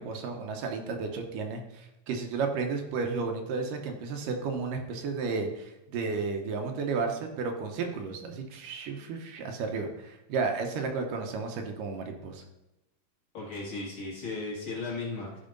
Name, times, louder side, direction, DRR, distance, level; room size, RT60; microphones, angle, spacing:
voice 1, 0.0-12.4, right 4 dB, 75° right, 4 dB, 2.6 m, -33 dB
voice 2, 13.3-15.4, left 3 dB, 40° left, -5 dB, 2.6 m, -36 dB
12.5 x 4.8 x 5.2 m, 0.95 s
omnidirectional pair, 3.9 m